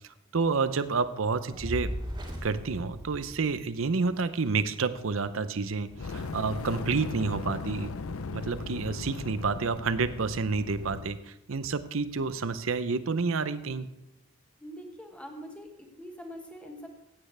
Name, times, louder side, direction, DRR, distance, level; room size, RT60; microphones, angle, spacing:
voice 1, 0.3-1.9 2.4-7.9 8.3-13.9, right 4 dB, 70° right, 13 dB, 0.7 m, -29 dB
Fire, 1.5-4.0, equal, 20° right, 2.1 m, -37 dB
Fire 2, 5.9-11.2, left 4 dB, 85° left, 0.6 m, -38 dB
voice 2, 14.6-16.9, equal, 5° left, 2 dB, 1.7 m, -44 dB
16.0 x 8.8 x 3.3 m, 0.90 s
head